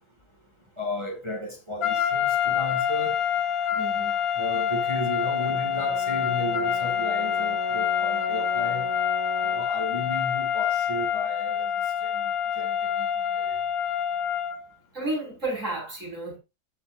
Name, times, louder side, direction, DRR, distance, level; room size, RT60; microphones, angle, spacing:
voice 1, 0.8-3.1 4.4-8.9 9.4-11.7 12.0-13.1 13.3-13.6, left 1 dB, 20° right, 2.3 m, -34 dB
sound 1, 1.8-14.7, left 9 dB, 70° left, 1.3 m, -26 dB
voice 2, 3.7-4.1 14.9-16.4, right 2 dB, 55° right, 6.3 m, -32 dB
Brass instrument, 5.5-9.8, right 8 dB, 70° right, 1.1 m, -39 dB
16.0 x 5.9 x 2.6 m
omnidirectional pair, 1.6 m